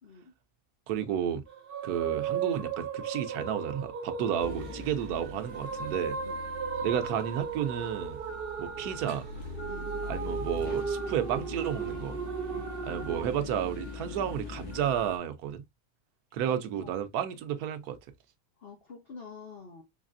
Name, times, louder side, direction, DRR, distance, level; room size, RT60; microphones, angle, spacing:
voice 1, 0.0-0.3 6.2-6.4 9.6-9.9 12.4-12.7 16.4-16.9 18.6-19.8, left 4 dB, 45° left, 1.0 m, -47 dB
voice 2, 0.9-1.4 1.8-6.2 6.8-8.2 8.6-9.3 10.1-12.2 12.9-15.6 16.3-18.0, right 9 dB, 85° right, 1.2 m, -32 dB
sound 1, 1.5-13.2, right 6 dB, 55° right, 0.6 m, -36 dB
sound 2, 4.4-15.2, left 3 dB, 90° left, 1.7 m, -42 dB
4.0 x 3.3 x 2.5 m
omnidirectional pair, 1.6 m